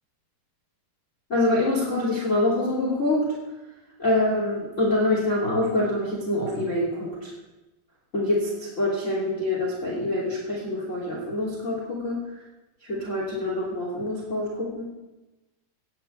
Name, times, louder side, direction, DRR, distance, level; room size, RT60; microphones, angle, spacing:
voice 1, 1.3-3.2 4.0-7.3 8.1-12.2 12.8-14.8, left 1 dB, 20° left, -4 dB, 2.9 m, -25 dB
9.6 x 9.1 x 8.7 m, 1.0 s
omnidirectional pair, 4.4 m